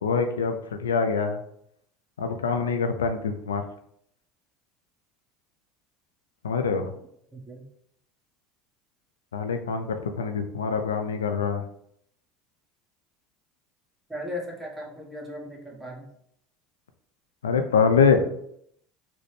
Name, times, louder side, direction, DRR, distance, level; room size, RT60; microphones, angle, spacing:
voice 1, 0.0-1.4 2.2-3.6 6.4-6.9 9.3-11.6 17.4-18.2, left 5 dB, 90° left, 6 dB, 0.3 m, -24 dB
voice 2, 7.3-7.6 14.1-16.0, left 1 dB, 5° right, -3 dB, 1.3 m, -37 dB
4.1 x 2.1 x 3.2 m, 0.70 s
hypercardioid pair, 80°, 0 cm